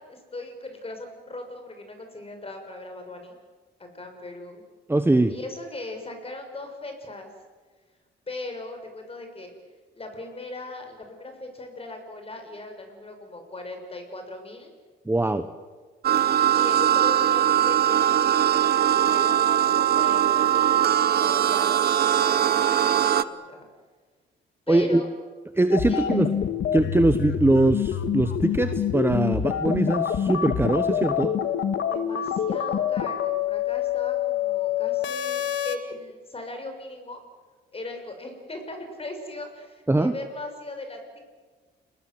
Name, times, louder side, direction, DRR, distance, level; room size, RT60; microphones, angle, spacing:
voice 1, 0.0-3.4 3.8-4.6 5.3-7.3 8.3-9.5 9.9-14.7 15.2-15.3 16.5-21.7 22.2-23.7 24.7-25.1 25.8-26.3 31.9-37.2 37.7-41.2, left 2 dB, 30° left, 5 dB, 6.7 m, -38 dB
voice 2, 4.9-5.3 15.1-15.5 24.7-25.0 25.5-26.3 26.7-31.3 39.9-40.1, right 2 dB, 10° right, 9 dB, 1.2 m, -22 dB
sound 1, 16.0-23.2, right 10 dB, 55° right, 1.0 m, -21 dB
sound 2, 25.7-35.8, left 9 dB, 70° left, 1.9 m, -26 dB
30.0 x 21.0 x 7.9 m, 1.4 s
cardioid pair, 90°, 20 cm